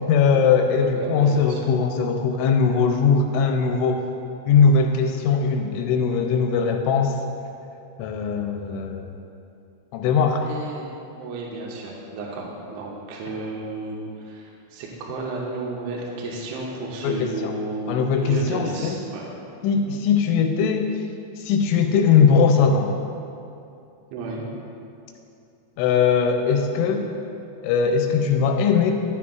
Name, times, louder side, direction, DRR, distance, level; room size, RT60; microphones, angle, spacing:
voice 1, 0.0-4.0 4.5-7.2 8.0-9.2 9.9-10.5 17.0-17.5 17.9-19.0 19.6-20.9 21.4-22.9 25.8-27.1 27.6-28.9, left 5 dB, 85° left, 3 dB, 2.9 m, -20 dB
voice 2, 0.8-1.6 10.4-10.8 11.2-17.9 18.2-19.2 24.1-24.5, right 2 dB, 80° right, -3 dB, 3.2 m, -32 dB
11.0 x 8.4 x 2.4 m, 2.6 s
omnidirectional pair, 5.5 m